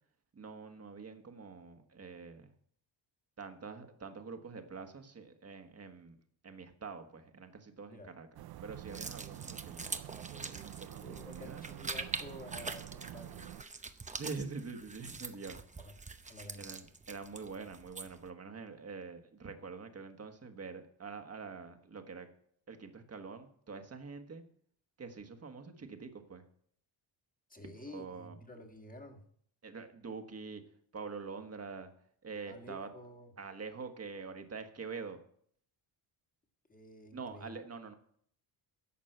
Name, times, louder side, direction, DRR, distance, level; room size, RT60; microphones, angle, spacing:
voice 1, 0.3-2.5 3.4-6.2 6.4-8.3 8.6-11.6 14.1-15.6 16.5-22.3 22.7-24.4 25.0-26.4 27.6-28.4 29.6-30.6 30.9-31.9 32.2-32.9 33.4-35.2 37.1-37.9, right 4 dB, 30° right, 6 dB, 1.4 m, -45 dB
sound 1, 8.4-13.6, right 14 dB, 55° right, 0.5 m, -48 dB
sound 2, 8.9-18.3, right 3 dB, 15° right, 0.7 m, -44 dB
voice 2, 11.0-13.6 15.8-16.0 16.3-16.7 27.5-29.2 32.5-33.3 36.7-37.5, left 1 dB, 15° left, 3 dB, 1.6 m, -51 dB
11.5 x 7.3 x 7.8 m, 0.63 s
wide cardioid pair, 145°, 47 cm